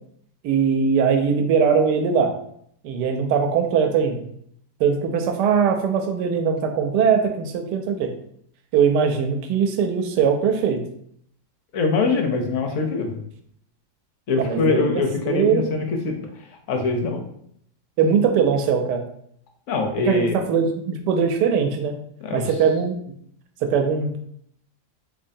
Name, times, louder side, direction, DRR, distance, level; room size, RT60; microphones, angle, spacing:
voice 1, 0.4-2.3 2.8-4.2 4.8-8.1 8.7-10.8 14.4-14.9 15.3-15.7 18.0-19.0 20.0-21.9 22.3-22.9 23.6-24.2, right 6 dB, 90° right, 5 dB, 1.2 m, -21 dB
voice 2, 11.7-13.2 14.3-16.2 16.7-17.2 19.7-20.4 22.2-22.5, left 3 dB, 65° left, 4 dB, 0.8 m, -23 dB
3.6 x 3.2 x 2.6 m, 0.68 s
omnidirectional pair, 1.7 m